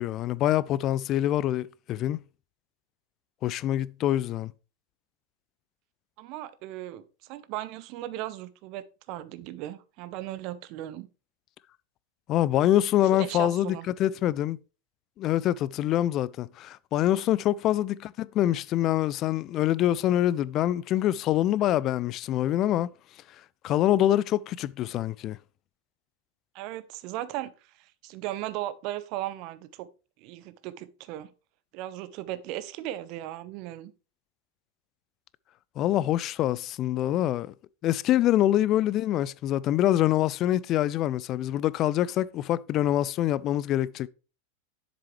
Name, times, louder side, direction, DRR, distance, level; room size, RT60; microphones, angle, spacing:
voice 1, 0.0-2.2 3.4-4.5 12.3-14.6 15.2-22.9 23.6-25.4 35.8-37.5 37.8-44.1, left 13 dB, 35° left, 0.3 m, -25 dB
voice 2, 6.2-11.1 13.1-13.9 26.5-29.9 30.2-31.3 31.7-33.9, right 14 dB, 40° right, 0.6 m, -37 dB
7.5 x 6.9 x 3.1 m
figure-of-eight pair, 90°, 0 cm